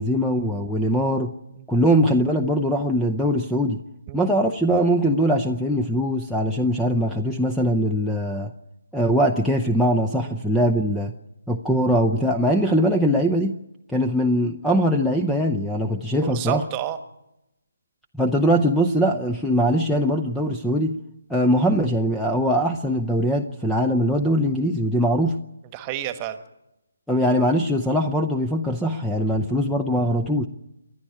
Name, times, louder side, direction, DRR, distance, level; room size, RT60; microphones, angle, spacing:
voice 1, 0.0-1.3 1.7-3.8 4.1-8.5 8.9-11.1 11.5-13.5 13.9-16.6 18.1-21.0 21.3-25.4 27.1-30.5, equal, ahead, 3 dB, 0.7 m, -21 dB
voice 2, 16.2-17.0 25.7-26.4, right 12 dB, 20° right, 10 dB, 1.4 m, -30 dB
28.5 x 11.5 x 8.3 m, 0.92 s
figure-of-eight pair, 150°, 0 cm